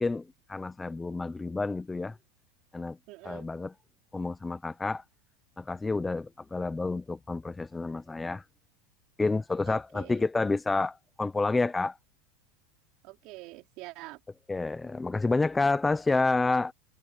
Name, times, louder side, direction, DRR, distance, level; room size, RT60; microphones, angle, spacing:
voice 1, 0.0-2.1 2.7-3.0 3.2-3.7 4.1-5.0 5.6-8.4 9.2-11.9 14.5-16.7, left 3 dB, 5° left, 0.7 m, -29 dB
voice 2, 3.1-3.5 9.7-10.2 13.0-14.2, right 21 dB, 40° right, 4.5 m, -46 dB
supercardioid pair, 175°, 0 cm